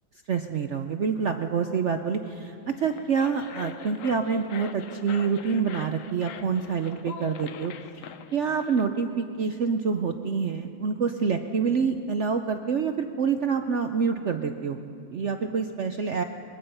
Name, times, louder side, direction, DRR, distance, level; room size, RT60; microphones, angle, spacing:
voice 1, 0.3-14.8 15.1-16.2, right 6 dB, 85° right, 6 dB, 0.6 m, -27 dB
sound 1, 2.7-8.9, left 8 dB, 75° left, 0.7 m, -43 dB
22.0 x 21.5 x 5.6 m, 2.5 s
omnidirectional pair, 2.2 m